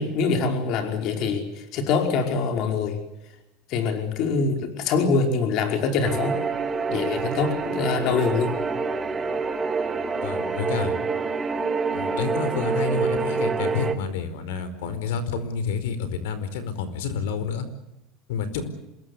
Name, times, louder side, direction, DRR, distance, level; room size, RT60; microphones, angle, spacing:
voice 1, 0.0-3.0 3.7-6.4 6.9-8.6, left 4 dB, 55° left, 5 dB, 5.1 m, -24 dB
sound 1, 6.0-13.9, right 4 dB, 20° right, 2.5 m, -27 dB
voice 2, 10.2-10.9 11.9-17.7 18.3-18.7, left 5 dB, 90° left, 13 dB, 4.7 m, -29 dB
27.0 x 21.5 x 8.2 m, 0.93 s
supercardioid pair, 130°, 0 cm